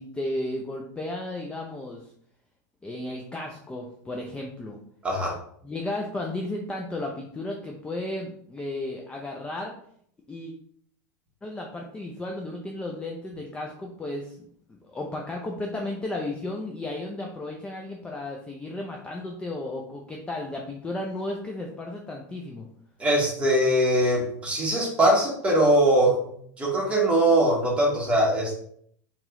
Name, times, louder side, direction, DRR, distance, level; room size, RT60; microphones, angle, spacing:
voice 1, 0.0-2.1 2.8-4.8 5.6-9.7 10.3-10.5 11.4-22.7, left 2 dB, 10° left, 1 dB, 0.4 m, -34 dB
voice 2, 5.0-5.3 23.0-28.6, right 1 dB, 10° right, -3 dB, 1.4 m, -22 dB
3.0 x 2.9 x 3.6 m, 0.65 s
supercardioid pair, 120°, 10 cm